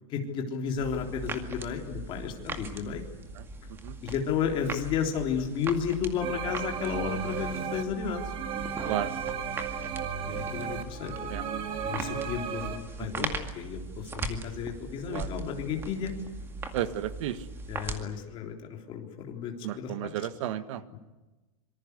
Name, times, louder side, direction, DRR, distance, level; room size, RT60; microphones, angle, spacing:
voice 1, 0.1-3.0 4.0-8.2 10.3-11.3 11.8-16.1 17.7-20.1 20.9-21.0, left 7 dB, 30° left, 3 dB, 3.6 m, -33 dB
sound 1, 0.8-18.0, right 3 dB, 15° right, 2.2 m, -40 dB
sound 2, 6.2-12.8, right 7 dB, 30° right, 2.5 m, -34 dB
voice 2, 13.0-13.4 15.1-15.3 16.7-17.4 19.6-20.8, right 12 dB, 60° right, 12 dB, 1.7 m, -33 dB
26.0 x 25.0 x 8.2 m, 1.1 s
supercardioid pair, 175°, 18 cm